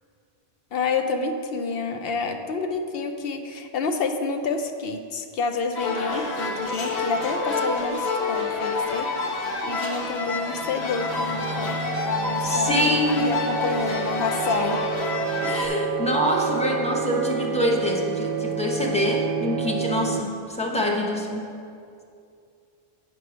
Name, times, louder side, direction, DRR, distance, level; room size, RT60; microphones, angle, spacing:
voice 1, 0.7-11.8 12.1-14.8, left 4 dB, 70° left, 6 dB, 0.8 m, -29 dB
sound 1, 5.7-15.7, left 3 dB, 85° left, 1.2 m, -28 dB
sound 2, 10.6-20.2, right 6 dB, 65° right, 0.7 m, -30 dB
voice 2, 12.4-13.3 15.4-21.5, left 1 dB, 5° left, -1 dB, 0.7 m, -25 dB
8.4 x 4.6 x 6.0 m, 2.5 s
omnidirectional pair, 1.1 m